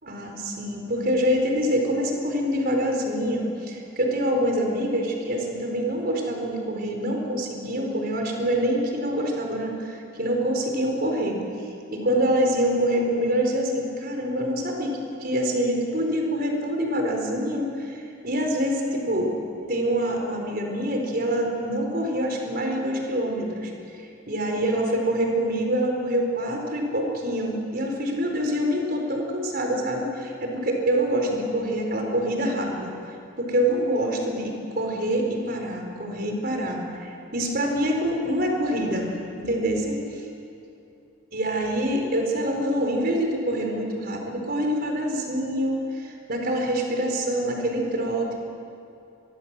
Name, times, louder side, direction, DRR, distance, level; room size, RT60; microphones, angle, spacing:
voice 1, 0.0-11.4 11.9-19.3 19.7-32.9 33.4-39.1 39.4-40.2 41.3-48.4, equal, 50° right, 2 dB, 4.3 m, -26 dB
24.0 x 23.5 x 7.6 m, 2.7 s
head